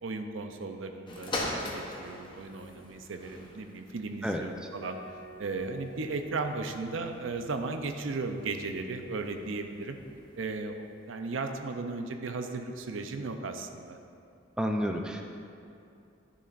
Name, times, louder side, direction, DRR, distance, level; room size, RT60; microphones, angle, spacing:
voice 1, 0.0-5.0 5.4-10.0 10.4-14.0, right 3 dB, 90° right, 6 dB, 0.6 m, -36 dB
sound 1, 1.1-10.6 11.3-11.4, left 1 dB, 25° left, 0.8 m, -43 dB
sound 2, 4.8-7.1, left 2 dB, 45° left, 1.6 m, -50 dB
voice 2, 14.6-15.2, equal, 5° right, 2 dB, 0.4 m, -30 dB
11.0 x 6.9 x 2.5 m, 2.6 s
head